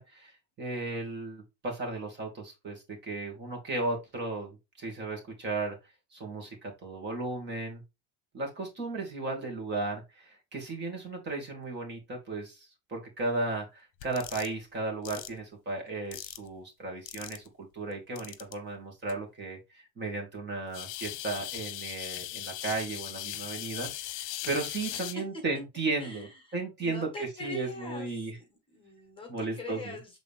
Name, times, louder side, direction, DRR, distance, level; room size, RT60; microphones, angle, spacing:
voice 1, 0.0-5.8 6.1-7.8 8.3-17.4 17.7-19.6 20.0-26.3 26.5-28.4 29.3-29.9, right 3 dB, 30° right, 1 dB, 2.4 m, -35 dB
Clockwork Stegasaurus Toy, 14.0-14.5 15.0-15.3 16.1-16.5 17.1-17.5 18.2-18.5 19.1-19.2 20.7-25.1, left 14 dB, 55° left, 1.0 m, -39 dB
voice 2, 24.9-25.2 26.0-30.2, left 2 dB, 15° left, 3 dB, 1.6 m, -43 dB
7.9 x 3.8 x 3.5 m, 0.24 s
cardioid pair, 160°, 36 cm